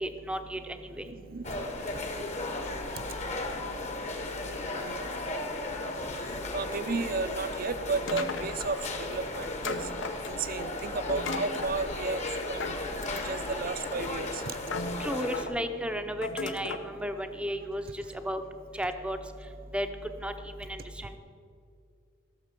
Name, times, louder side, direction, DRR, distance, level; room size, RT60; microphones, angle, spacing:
voice 1, 0.0-1.0 15.0-18.4 18.7-19.2 19.7-19.9 20.2-20.3 20.6-21.2, equal, 5° right, 7 dB, 0.7 m, -34 dB
voice 2, 1.0-3.2 3.6-3.7 4.5-5.1 6.0-9.9 10.3-12.2 12.5-12.8 13.1-14.6 14.9-15.0, right 4 dB, 45° right, 12 dB, 0.6 m, -35 dB
sound 1, 1.4-15.4, left 2 dB, 35° left, 1.2 m, -35 dB
sound 2, 8.1-8.9 9.6-10.6 11.1-11.8 12.6-13.5 14.2-14.3 14.7-15.5 16.2-16.9, left 3 dB, 65° left, 0.8 m, -36 dB
14.5 x 6.6 x 6.7 m, 2.4 s
head